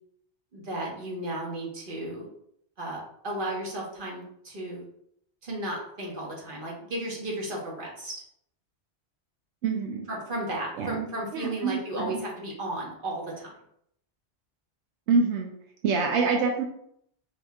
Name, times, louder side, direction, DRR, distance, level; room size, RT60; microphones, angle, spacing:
voice 1, 0.5-2.3 2.8-4.8 5.4-8.1 10.1-13.5, right 1 dB, 50° right, -3 dB, 1.4 m, -34 dB
voice 2, 9.6-10.1 10.8-11.1 11.3-12.2 15.1-15.5 15.8-16.6, right 4 dB, 85° right, 2 dB, 0.9 m, -26 dB
5.0 x 3.7 x 2.3 m, 0.71 s
omnidirectional pair, 1.1 m